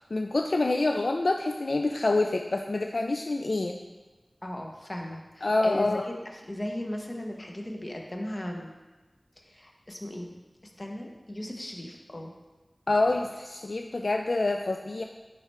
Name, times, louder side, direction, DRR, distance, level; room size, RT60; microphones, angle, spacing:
voice 1, 0.0-3.8 5.4-6.1 12.9-15.0, left 2 dB, 75° left, 4 dB, 0.3 m, -27 dB
voice 2, 4.4-8.7 9.4-10.4 10.6-12.3, left 1 dB, 40° left, 1 dB, 1.0 m, -37 dB
9.6 x 3.4 x 4.3 m, 1.2 s
wide cardioid pair, 50°, 0 cm